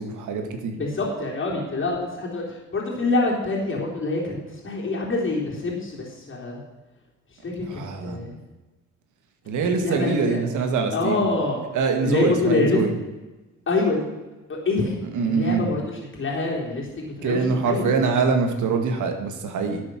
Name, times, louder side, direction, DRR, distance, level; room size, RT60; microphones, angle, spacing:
voice 1, 0.0-0.8 7.7-8.4 9.5-11.3 11.7-12.9 15.1-15.7 17.2-19.8, right 5 dB, 80° right, 5 dB, 2.1 m, -24 dB
voice 2, 0.8-6.6 7.4-8.3 9.7-10.4 10.9-11.6 12.0-12.8 13.7-14.0 14.5-15.0 15.2-18.1, left 3 dB, 40° left, -2 dB, 3.7 m, -26 dB
11.5 x 8.1 x 6.3 m, 1.1 s
cardioid pair, 90°, 30 cm